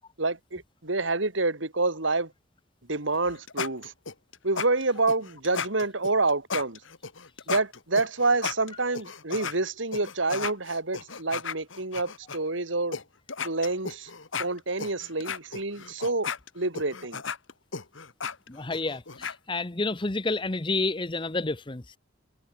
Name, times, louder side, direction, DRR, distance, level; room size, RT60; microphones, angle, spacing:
voice 1, 0.2-2.3 2.9-3.9 4.4-6.8 7.5-13.0 13.4-14.1 14.4-16.3 16.5-17.2, right 3 dB, 75° right, 3.0 m, -28 dB
sound 1, 3.1-9.6 9.9-12.4 12.9-13.0 13.3-19.4, left 5 dB, 75° left, 2.1 m, -35 dB
voice 2, 18.5-21.8, left 3 dB, 25° left, 0.9 m, -29 dB
head